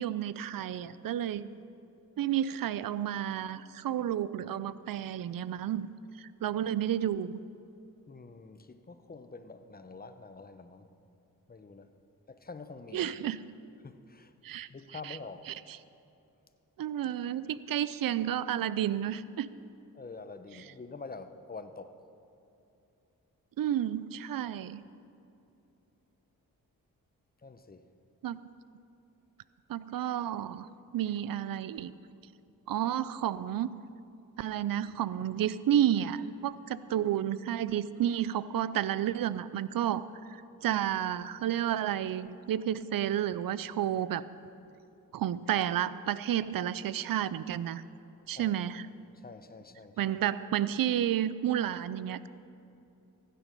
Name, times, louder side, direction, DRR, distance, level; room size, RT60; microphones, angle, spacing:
voice 1, 0.0-1.5 2.2-5.9 6.2-7.4 12.9-13.4 14.4-14.7 15.0-15.2 15.5-15.6 16.8-19.5 23.6-24.8 28.2-28.4 29.7-30.7 30.9-31.9 32.7-33.7 34.4-44.2 45.1-47.8 48.3-48.9 50.0-52.3, right 11 dB, 70° right, 0.5 m, -31 dB
voice 2, 8.1-10.9 11.5-11.9 12.3-13.1 13.8-14.3 14.7-15.5 19.9-22.0 27.4-27.9 48.3-48.6 49.1-50.1, left 4 dB, 25° left, 0.8 m, -46 dB
15.5 x 9.3 x 5.3 m
cardioid pair, 60°, 36 cm